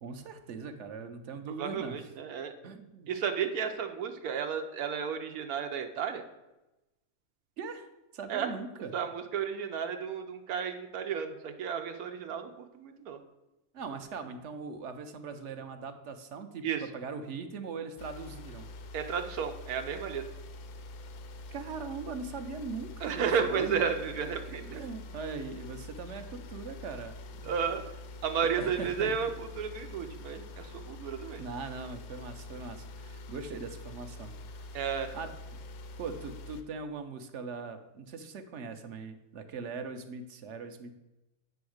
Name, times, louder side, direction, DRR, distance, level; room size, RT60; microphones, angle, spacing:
voice 1, 0.0-2.0 2.6-3.1 7.6-9.0 13.7-18.7 21.5-23.8 24.7-27.1 27.4-27.5 28.6-29.2 31.4-34.7 35.1-35.6 36.0-40.9, right 4 dB, 60° right, 8 dB, 0.9 m, -40 dB
voice 2, 1.6-2.5 3.1-6.2 8.3-8.5 8.9-13.2 16.6-16.8 18.9-20.2 23.0-24.8 27.4-27.8 28.2-31.4 34.7-35.1, right 7 dB, 90° right, 6 dB, 1.2 m, -33 dB
sound 1, 18.0-36.6, left 2 dB, 85° left, 1.2 m, -45 dB
8.6 x 3.5 x 6.3 m, 0.99 s
omnidirectional pair, 1.5 m